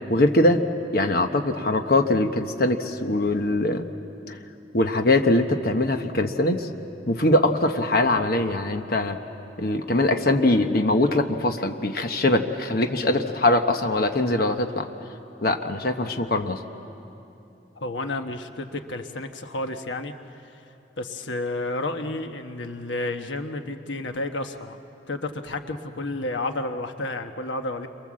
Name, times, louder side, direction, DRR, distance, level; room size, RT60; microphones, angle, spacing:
voice 1, 0.1-0.6 0.9-3.8 4.3-4.4 4.7-6.7 7.1-9.2 9.6-14.9 15.4-16.6, left 1 dB, 55° left, 5 dB, 1.1 m, -22 dB
voice 2, 17.7-20.1 20.4-20.6 21.0-24.8 25.1-27.9, left 2 dB, 90° left, 6 dB, 1.2 m, -31 dB
29.5 x 23.5 x 7.6 m, 2.8 s
head